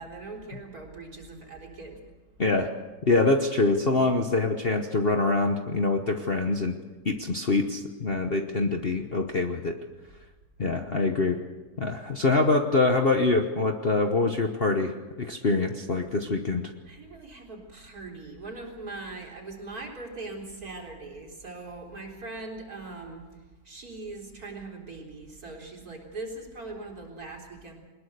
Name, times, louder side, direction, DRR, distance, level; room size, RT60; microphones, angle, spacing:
voice 1, 0.0-2.0 16.9-23.3 23.6-27.7, right 3 dB, 55° right, 0 dB, 4.3 m, -41 dB
voice 2, 3.0-6.8 7.0-9.8 10.6-11.4 11.8-14.9 15.2-16.7, left 3 dB, 40° left, 4 dB, 1.1 m, -24 dB
21.5 x 20.5 x 6.7 m, 1.2 s
omnidirectional pair, 1.9 m